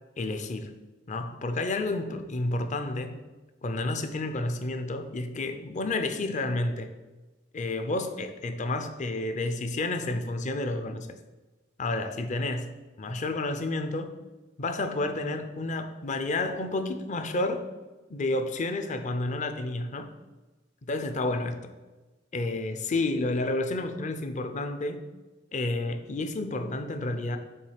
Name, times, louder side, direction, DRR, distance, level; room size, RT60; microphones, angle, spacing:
voice 1, 0.2-0.7 1.1-3.2 3.6-6.9 7.5-11.1 11.8-12.7 13.0-14.1 14.6-17.6 18.1-20.1 20.8-21.6 22.3-25.0 25.5-27.4, left 2 dB, 40° left, 7 dB, 0.5 m, -30 dB
7.2 x 3.0 x 4.9 m, 1.2 s
head